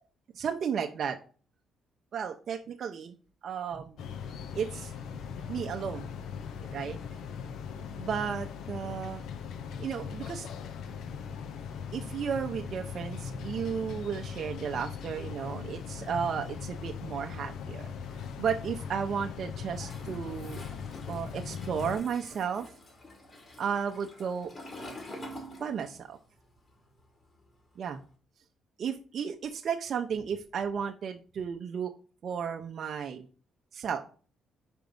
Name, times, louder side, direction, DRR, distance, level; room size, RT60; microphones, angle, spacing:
voice 1, 0.4-1.2 2.1-3.1 3.4-4.0 4.5-4.9 5.5-6.1 6.7-7.0 8.0-9.2 9.8-10.5 11.9-17.9 18.4-20.6 21.1-22.7 23.6-24.5 25.6-26.2 27.8-28.0 28.8-31.9 32.2-33.3 33.7-34.0, right 7 dB, 60° right, 3 dB, 0.7 m, -33 dB
sound 1, 4.0-22.0, left 6 dB, 80° left, 0.7 m, -40 dB
Toilet flush, 19.7-26.2 26.4-28.0, left 1 dB, 40° left, 2.6 m, -47 dB
5.1 x 4.6 x 5.3 m, 0.39 s
cardioid pair, 90°, 0 cm